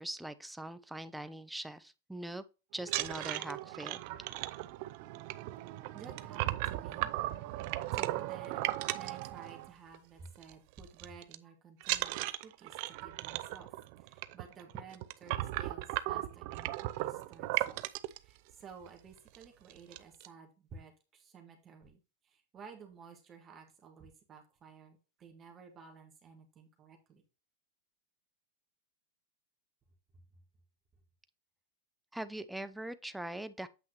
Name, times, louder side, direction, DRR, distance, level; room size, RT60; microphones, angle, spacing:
voice 1, 0.0-2.4 2.7-4.0 32.1-33.7, right 1 dB, 5° right, 0.6 m, -42 dB
sound 1, 2.8-10.0 10.3-10.5 10.8-11.4 11.8-18.2 18.9-19.0 19.3-19.4 19.7-20.3, right 17 dB, 55° right, 0.5 m, -36 dB
voice 2, 5.9-7.1 7.9-8.6 8.9-13.7 14.0-17.8 18.2-27.2, right 5 dB, 25° right, 1.6 m, -53 dB
8.1 x 5.7 x 3.0 m
hypercardioid pair, 125°, 0 cm